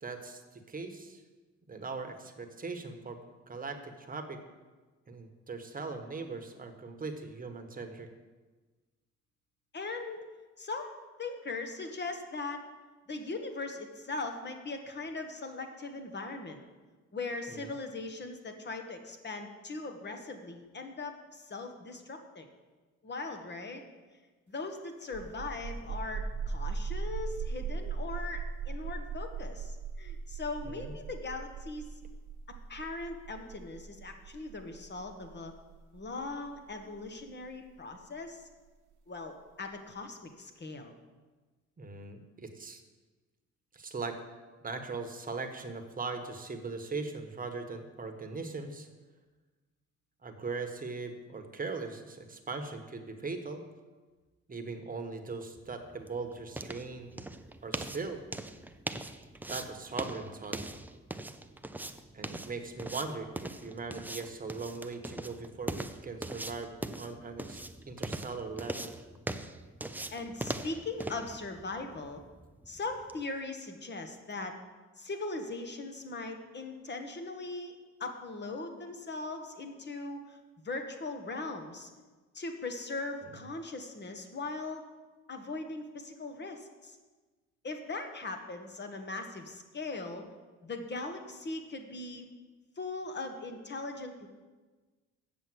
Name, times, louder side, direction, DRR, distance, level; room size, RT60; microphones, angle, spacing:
voice 1, 0.0-1.2 1.7-3.2 3.5-4.4 5.1-8.1 17.5-17.7 30.6-30.9 41.8-42.8 43.7-44.2 44.6-48.9 50.2-53.6 54.5-57.2 57.6-58.2 59.5-60.6 62.1-66.7 67.0-67.6 67.9-68.9, right 4 dB, 30° right, 5 dB, 1.3 m, -40 dB
voice 2, 9.7-10.2 10.6-12.6 13.1-16.6 17.1-22.5 23.0-23.8 24.5-31.9 32.7-35.5 35.9-38.5 39.1-40.9 70.1-72.2 72.7-74.6 75.0-77.7 78.0-80.4 80.6-81.9 82.3-84.8 85.3-87.0 87.6-90.3 90.6-92.3 92.8-94.3, left 3 dB, 35° left, 6 dB, 1.4 m, -40 dB
sound 1, 25.0-38.4, right 5 dB, 75° right, 1.0 m, -39 dB
sound 2, 55.4-73.2, right 2 dB, 5° right, 0.5 m, -41 dB
7.5 x 6.9 x 7.8 m, 1.3 s
cardioid pair, 90°, 30 cm